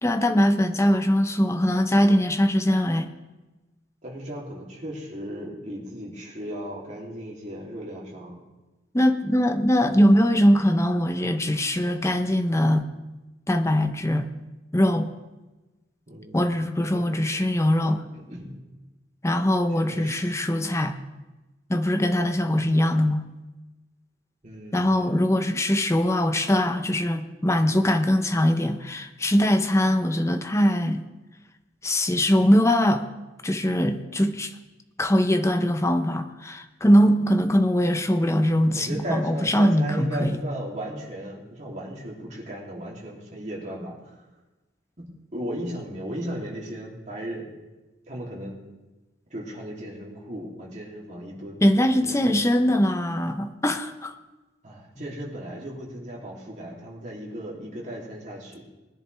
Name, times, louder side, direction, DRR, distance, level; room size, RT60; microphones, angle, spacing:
voice 1, 0.0-3.1 8.9-12.8 13.5-14.3 14.7-15.1 16.3-18.0 19.2-21.0 21.7-23.3 24.7-31.0 31.8-33.1 33.4-34.5 35.0-40.4 51.6-54.2 55.0-55.1, equal, 15° left, 8 dB, 0.7 m, -22 dB
voice 2, 4.0-8.4 16.1-16.7 16.9-17.0 17.8-18.5 19.7-20.3 24.4-25.2 38.7-44.2 45.0-47.5 48.1-48.6 49.3-51.6 52.0-52.4 54.6-58.6, right 1 dB, 40° right, -3 dB, 3.0 m, -36 dB
20.0 x 10.5 x 3.4 m, 1.1 s
head